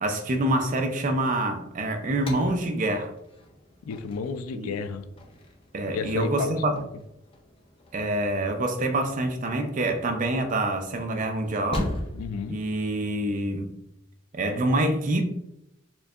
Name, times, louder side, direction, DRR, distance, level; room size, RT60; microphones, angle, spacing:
voice 1, 0.0-3.1 4.5-4.7 5.7-6.7 7.9-11.9 12.5-13.7 14.3-15.2, right 1 dB, 40° right, 5 dB, 0.4 m, -26 dB
sound 1, 1.8-12.4, left 1 dB, 25° left, 0.5 m, -40 dB
voice 2, 3.8-5.1 5.9-6.8 12.1-12.6, left 5 dB, 85° left, 10 dB, 0.4 m, -32 dB
4.3 x 2.7 x 2.4 m, 0.80 s
head